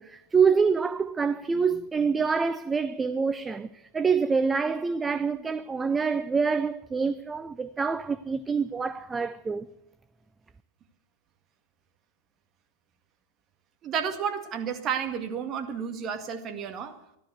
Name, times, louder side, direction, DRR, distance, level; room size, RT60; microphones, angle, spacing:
voice 1, 0.0-9.7, right 5 dB, 15° right, 0.5 m, -26 dB
voice 2, 13.8-17.0, right 7 dB, 30° right, 1.9 m, -31 dB
14.5 x 12.0 x 8.1 m
figure-of-eight pair, 90°, 0 cm